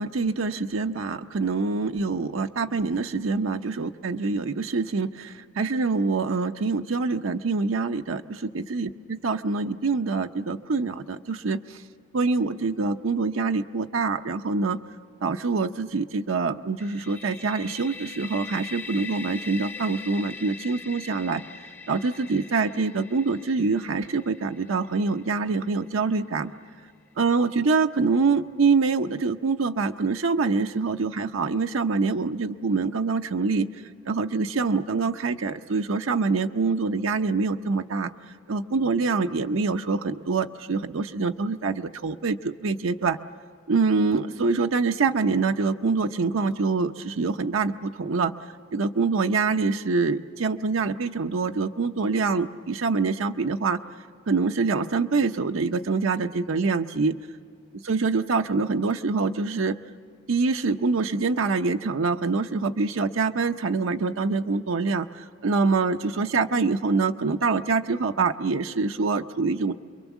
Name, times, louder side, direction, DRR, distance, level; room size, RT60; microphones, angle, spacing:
voice 1, 0.0-11.8 12.1-14.8 15.2-21.4 21.9-26.5 27.2-33.7 34.1-38.1 38.5-43.2 43.7-48.3 48.7-53.8 54.3-57.2 57.8-59.7 60.3-69.7, right 4 dB, 90° right, 6 dB, 0.6 m, -25 dB
sound 1, 16.8-26.5, left 4 dB, 10° left, 0.6 m, -42 dB
29.0 x 23.0 x 7.2 m, 2.1 s
head